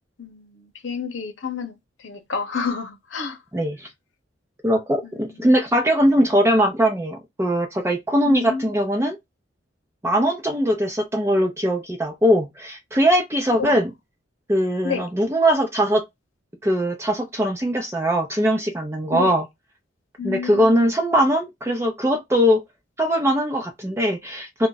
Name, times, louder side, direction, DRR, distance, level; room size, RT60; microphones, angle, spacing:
voice 1, 0.2-1.7 2.0-3.4 5.0-5.1 5.4-5.5 8.2-8.7 13.6-13.8 14.8-15.0 19.1-19.3 20.2-20.9, left 5 dB, 80° left, 0.8 m, -30 dB
voice 2, 3.5-3.9 4.6-9.2 10.0-13.9 14.5-16.0 16.6-19.5 20.2-22.6 23.0-24.7, equal, 15° right, 0.5 m, -21 dB
2.5 x 2.2 x 3.7 m
head